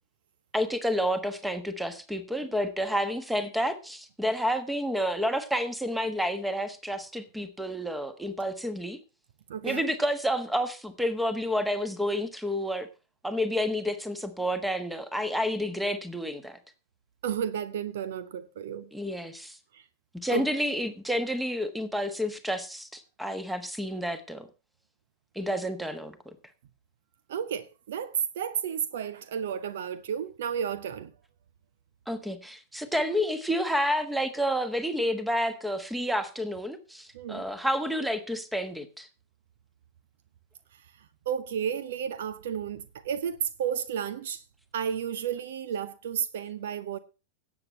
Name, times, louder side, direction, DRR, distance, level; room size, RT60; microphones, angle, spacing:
voice 1, 0.5-9.0 9.6-12.9 13.2-16.6 18.9-19.6 20.2-24.5 25.3-26.4 32.1-39.1, equal, 5° right, 1.4 m, -30 dB
voice 2, 9.5-9.9 17.2-18.9 19.7-19.8 20.3-20.5 27.3-31.1 37.1-37.5 41.3-44.4 44.7-47.0, right 8 dB, 60° right, 0.7 m, -32 dB
17.0 x 8.2 x 3.2 m
figure-of-eight pair, 90°, 0 cm